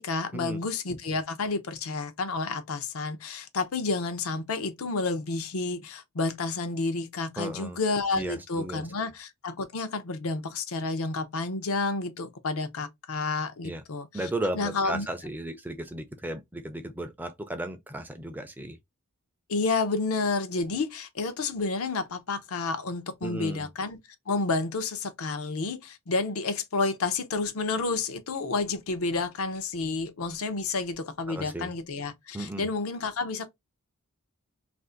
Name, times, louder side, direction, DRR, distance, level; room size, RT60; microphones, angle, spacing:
voice 1, 0.0-14.3 14.5-15.1 19.5-24.0 24.3-33.5, left 3 dB, 75° left, 0.6 m, -30 dB
voice 2, 7.4-7.8 8.2-8.8 13.6-13.8 14.1-18.8 23.2-23.7 31.3-31.7 32.3-32.7, right 1 dB, 10° right, 0.4 m, -35 dB
2.6 x 2.4 x 3.6 m
head